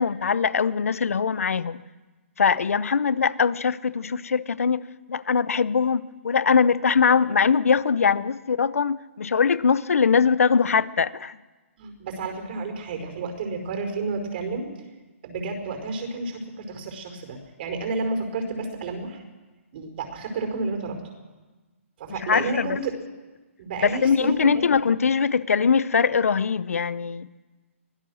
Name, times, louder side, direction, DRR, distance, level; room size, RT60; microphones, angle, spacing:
voice 1, 0.0-1.8 2.4-11.4 22.1-22.9 23.8-27.3, left 6 dB, 85° left, 0.9 m, -22 dB
voice 2, 11.8-14.7 15.2-19.2 19.7-21.0 22.0-23.0 23.6-24.7, right 3 dB, 45° right, 5.1 m, -31 dB
24.5 x 16.5 x 6.4 m
hypercardioid pair, 155°, 8 cm